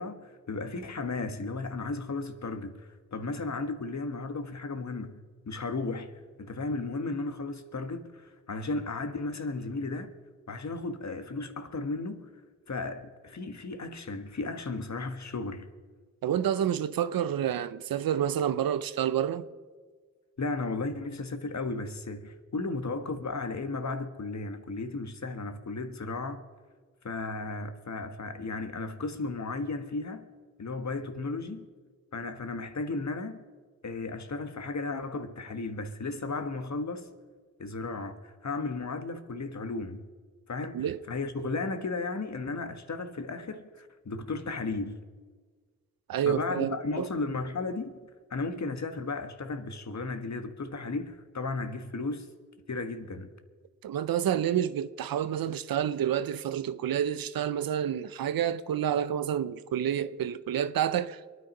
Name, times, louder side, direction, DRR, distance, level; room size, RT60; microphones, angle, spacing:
voice 1, 0.0-5.2 5.4-6.1 6.4-10.1 10.5-12.3 12.7-15.7 20.4-26.4 27.0-30.3 30.6-31.7 32.1-33.4 33.8-37.1 37.6-40.1 40.5-45.0 46.2-47.9 48.3-52.3 52.7-53.3, left 3 dB, 55° left, 1.5 m, -34 dB
voice 2, 16.2-19.5 40.7-41.0 46.1-47.1 53.8-61.2, right 9 dB, 90° right, 0.6 m, -29 dB
23.5 x 9.4 x 5.4 m
cardioid pair, 40°, 34 cm